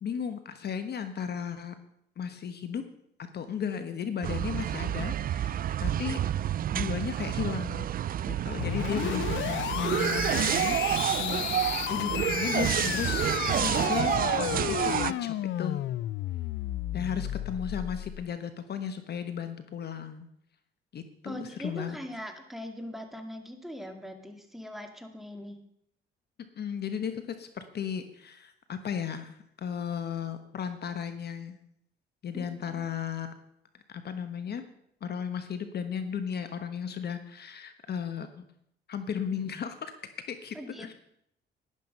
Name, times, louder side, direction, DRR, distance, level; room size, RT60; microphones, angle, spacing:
voice 1, 0.0-1.7 2.2-2.8 3.3-6.2 6.7-7.9 8.3-15.8 16.9-20.3 20.9-22.0 26.6-31.6 32.2-33.3 33.9-34.7 35.0-38.4 38.9-39.9 40.3-40.9, left 7 dB, 55° left, 9 dB, 1.2 m, -35 dB
sound 1, 4.2-15.1, right 11 dB, 45° right, 0.4 m, -29 dB
sound 2, 8.6-18.2, left 13 dB, 70° left, 0.5 m, -33 dB
voice 2, 21.2-25.6 32.3-32.9 40.5-40.9, equal, ahead, 4 dB, 2.2 m, -41 dB
12.0 x 10.5 x 5.4 m, 0.73 s
cardioid pair, 90°, 20 cm